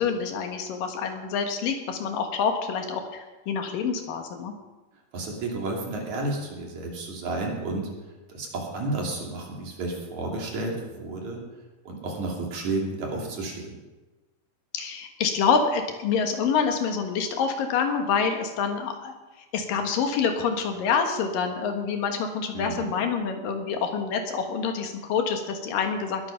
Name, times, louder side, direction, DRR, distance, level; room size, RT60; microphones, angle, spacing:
voice 1, 0.0-4.5 14.7-19.1 19.5-26.3, left 6 dB, 75° left, 5 dB, 3.1 m, -27 dB
voice 2, 5.1-7.9 8.3-11.4 11.9-13.7 22.5-22.9, right 2 dB, 55° right, -1 dB, 4.0 m, -31 dB
21.0 x 9.0 x 5.7 m, 1.2 s
omnidirectional pair, 4.0 m